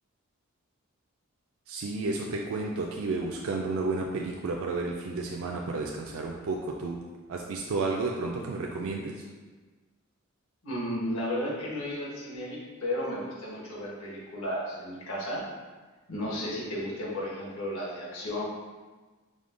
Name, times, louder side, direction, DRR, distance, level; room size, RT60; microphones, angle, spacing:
voice 1, 1.7-7.0 7.3-9.2, right 3 dB, 65° right, -1 dB, 0.4 m, -32 dB
voice 2, 10.6-15.4 16.1-18.4, left 1 dB, 70° left, -5 dB, 1.2 m, -33 dB
4.9 x 2.1 x 3.7 m, 1.3 s
head